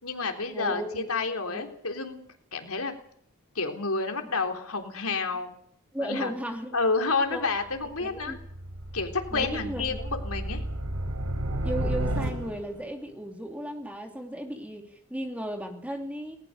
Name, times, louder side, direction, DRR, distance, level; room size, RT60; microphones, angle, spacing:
voice 1, 0.0-2.2 2.5-2.9 3.6-5.5 6.0-6.3 6.7-8.4 8.9-10.6, left 4 dB, 80° left, 4 dB, 3.6 m, -29 dB
voice 2, 0.5-1.1 1.5-1.7 5.9-6.8 7.3-7.4 8.0-8.4 9.3-10.0 11.6-16.4, right 1 dB, 5° right, 3 dB, 2.8 m, -35 dB
sound 1, 7.6-12.9, right 1 dB, 90° right, 4.5 m, -32 dB
19.5 x 19.5 x 6.7 m, 0.64 s
head